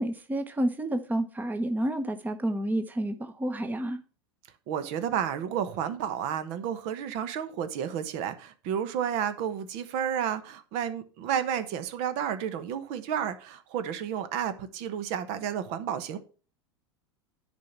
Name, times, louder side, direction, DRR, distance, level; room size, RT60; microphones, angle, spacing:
voice 1, 0.0-4.0, right 1 dB, 10° right, 0.9 m, -30 dB
voice 2, 4.7-16.2, right 9 dB, 55° right, 1.1 m, -31 dB
10.0 x 4.5 x 5.9 m
hypercardioid pair, 90°, 14 cm